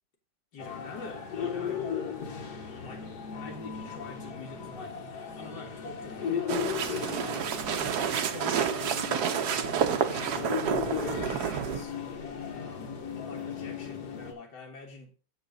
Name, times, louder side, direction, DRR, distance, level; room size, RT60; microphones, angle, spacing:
voice 1, 0.5-5.0 5.3-6.6 7.1-7.7 8.1-9.8 10.1-12.0 12.5-15.1, left 3 dB, 90° left, 2.2 m, -46 dB
sound 1, 0.6-14.3, left 7 dB, 65° left, 1.9 m, -36 dB
sound 2, 6.5-11.8, right 8 dB, 65° right, 1.3 m, -29 dB
7.0 x 6.9 x 5.1 m
omnidirectional pair, 1.8 m